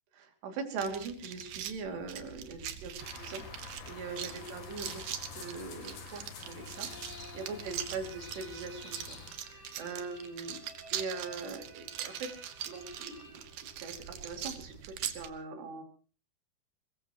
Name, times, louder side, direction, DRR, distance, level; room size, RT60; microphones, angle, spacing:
voice 1, 0.1-3.4 3.9-5.0 5.3-10.6 10.9-12.3 12.7-15.8, right 4 dB, 85° right, 4 dB, 4.8 m, -41 dB
sound 1, 0.8-15.3, right 10 dB, 65° right, 2.6 m, -42 dB
sound 2, 3.0-9.3, left 5 dB, 75° left, 5.0 m, -48 dB
sound 3, 6.4-14.1, right 2 dB, 25° right, 1.5 m, -54 dB
22.0 x 21.5 x 3.0 m, 0.39 s
omnidirectional pair, 4.8 m